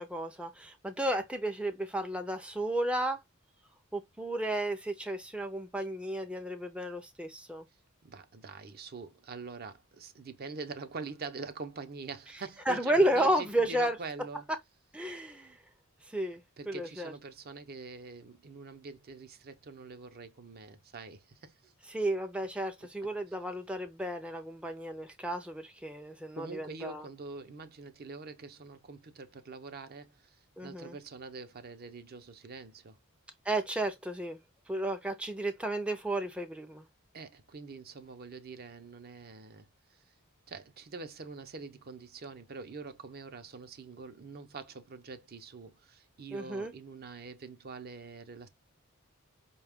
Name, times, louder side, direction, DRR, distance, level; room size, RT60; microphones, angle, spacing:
voice 1, 0.0-3.2 3.9-7.6 12.7-14.0 14.9-15.6 16.1-16.4 16.7-17.1 21.9-27.1 30.6-30.9 33.5-34.4 34.7-36.8 46.3-46.7, right 1 dB, 5° right, 0.4 m, -32 dB
voice 2, 8.0-14.4 16.6-21.7 26.3-30.4 30.6-33.0 37.1-39.7 40.5-48.5, right 4 dB, 45° right, 0.6 m, -45 dB
4.9 x 2.3 x 3.5 m
head